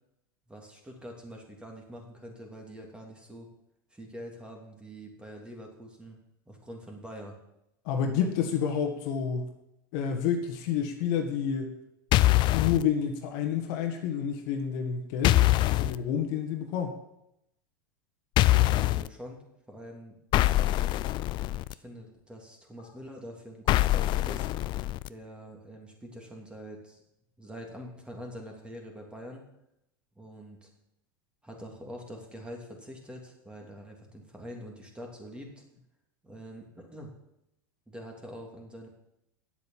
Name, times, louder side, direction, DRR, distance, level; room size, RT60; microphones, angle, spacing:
voice 1, 0.5-3.5 3.9-6.2 6.5-7.3 18.6-19.4 19.7-20.2 20.4-20.8 21.7-24.5 25.1-27.0 27.4-29.4 30.2-30.7 31.4-35.5 36.2-37.1 37.9-38.9, equal, 10° right, 1 dB, 3.0 m, -45 dB
voice 2, 7.9-9.5 9.9-11.7 12.5-15.4 15.8-16.9, left 8 dB, 60° left, 4 dB, 1.8 m, -29 dB
sound 1, 12.1-12.8 15.2-16.0 18.4-19.1 20.3-21.7 23.7-25.1, left 16 dB, 40° left, 0.4 m, -24 dB
9.5 x 8.0 x 7.4 m, 0.83 s
hypercardioid pair, 100°, 12 cm